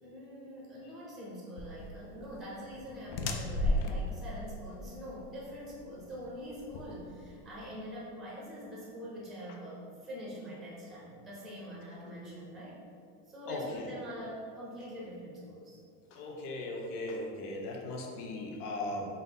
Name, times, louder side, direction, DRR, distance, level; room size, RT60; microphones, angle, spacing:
voice 1, 0.0-12.8 13.3-15.8, equal, ahead, -5 dB, 0.6 m, -44 dB
sound 1, 1.6-7.7, left 1 dB, 50° left, 0.5 m, -36 dB
voice 2, 13.5-13.9 16.1-19.1, left 2 dB, 70° left, 0 dB, 0.9 m, -38 dB
3.8 x 2.7 x 3.8 m, 2.4 s
supercardioid pair, 135°, 47 cm